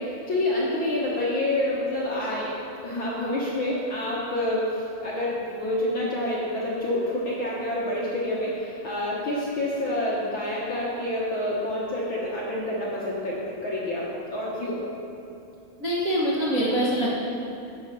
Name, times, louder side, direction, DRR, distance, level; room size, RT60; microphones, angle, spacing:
voice 1, 0.0-2.5 2.8-14.9, left 1 dB, 55° left, -6 dB, 1.4 m, -28 dB
voice 2, 15.8-17.1, equal, 70° right, -7 dB, 0.7 m, -24 dB
11.0 x 8.6 x 5.5 m, 2.7 s
omnidirectional pair, 4.2 m